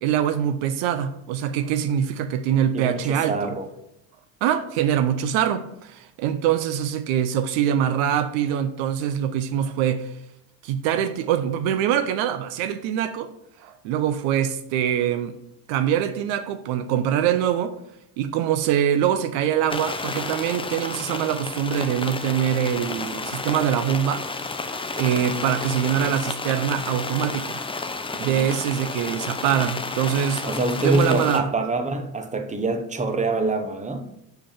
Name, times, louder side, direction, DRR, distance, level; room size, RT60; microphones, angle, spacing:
voice 1, 0.0-3.5 4.4-10.1 10.6-13.3 13.6-15.3 15.7-17.7 18.2-24.2 24.9-27.6 28.2-30.4 30.8-31.5, right 9 dB, 70° right, 0.7 m, -24 dB
voice 2, 2.7-3.7 28.3-28.5 30.4-34.1, right 2 dB, 15° right, 0.9 m, -25 dB
sound 1, 19.7-31.4, left 3 dB, 10° left, 0.6 m, -31 dB
5.3 x 5.0 x 5.6 m
hypercardioid pair, 75°, 48 cm